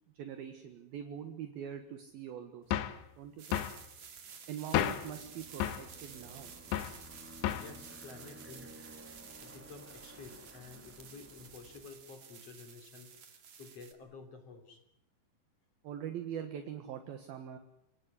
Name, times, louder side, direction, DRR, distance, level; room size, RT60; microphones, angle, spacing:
voice 1, 0.1-2.9 3.2-3.6 4.5-6.5 15.8-17.6, right 9 dB, 65° right, 7 dB, 3.1 m, -43 dB
sound 1, 2.7-3.0 3.5-3.8 4.7-5.1 5.6-5.9 6.7-7.0 7.4-7.8, left 11 dB, 80° left, 3.4 m, -32 dB
sound 2, 3.4-13.9, right 7 dB, 50° right, 3.1 m, -52 dB
Aircraft, 4.7-12.1, equal, 5° right, 1.2 m, -55 dB
voice 2, 7.6-8.7 9.4-14.8, left 4 dB, 35° left, 6 dB, 4.0 m, -51 dB
28.5 x 18.5 x 9.9 m, 0.81 s
omnidirectional pair, 5.1 m